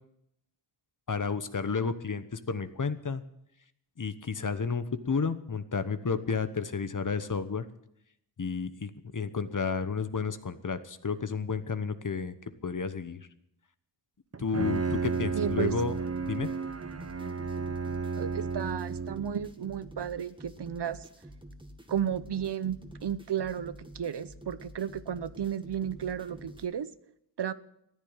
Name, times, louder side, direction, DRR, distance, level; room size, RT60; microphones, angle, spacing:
voice 1, 1.1-3.2 4.0-7.6 8.4-12.3 12.6-13.3 14.4-16.0 16.3-16.5, left 5 dB, 45° left, 12 dB, 1.1 m, -31 dB
Bowed string instrument, 14.3-19.4, right 5 dB, 35° right, 0.9 m, -33 dB
sound 1, 14.7-26.7, right 1 dB, 10° right, 1.9 m, -48 dB
voice 2, 15.3-15.7 18.2-21.0 21.9-26.9 27.4-27.5, right 9 dB, 65° right, 15 dB, 0.8 m, -33 dB
14.5 x 10.0 x 9.0 m, 0.78 s
wide cardioid pair, 80°, 44 cm